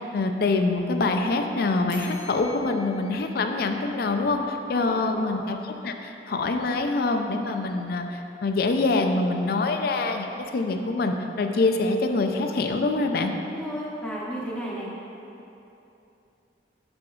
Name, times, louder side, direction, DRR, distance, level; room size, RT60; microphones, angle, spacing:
voice 1, 0.0-13.3, left 3 dB, 55° left, 5 dB, 0.4 m, -25 dB
sound 1, 1.9-4.6, equal, 85° right, 0.9 m, -47 dB
voice 2, 4.9-5.4 13.4-14.9, equal, 5° left, -6 dB, 0.8 m, -34 dB
7.7 x 6.1 x 2.3 m, 2.9 s
head